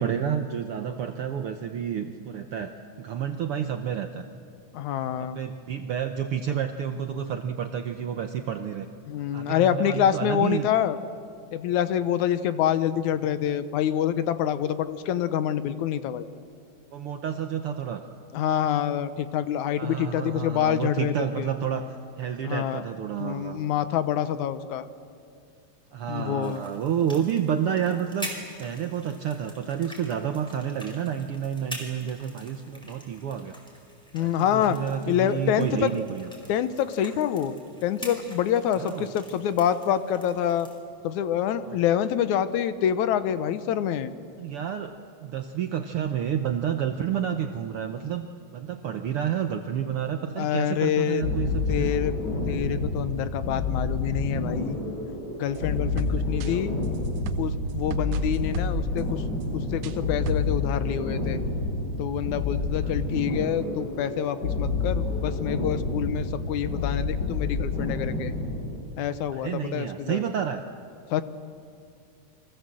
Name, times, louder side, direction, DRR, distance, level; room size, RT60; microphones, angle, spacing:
voice 1, 0.0-4.2 5.2-8.9 9.3-10.7 16.9-18.0 19.8-23.6 25.9-33.5 34.2-36.3 38.8-39.1 41.6-41.8 44.4-44.9 45.2-51.9 56.1-56.8 62.8-62.9 69.3-70.6, right 8 dB, 70° right, 6 dB, 1.4 m, -30 dB
voice 2, 4.7-5.4 9.1-11.0 11.5-16.3 18.3-21.5 22.4-22.8 23.2-24.9 26.1-26.6 34.1-34.8 35.1-35.9 36.5-37.6 37.8-40.7 41.0-44.1 50.4-51.2 51.7-52.1 52.5-54.8 55.4-56.7 57.4-59.2 59.5-61.4 62.0-68.3 69.0-70.2 71.1-71.2, left 10 dB, 75° left, 12 dB, 2.2 m, -26 dB
sound 1, 26.4-40.8, equal, ahead, 4.4 m, -45 dB
sound 2, 51.2-68.8, left 3 dB, 35° left, 4.4 m, -29 dB
sound 3, 55.5-60.0 60.3-60.7, right 11 dB, 90° right, 2.4 m, -36 dB
29.5 x 23.5 x 7.6 m, 2.4 s
omnidirectional pair, 3.6 m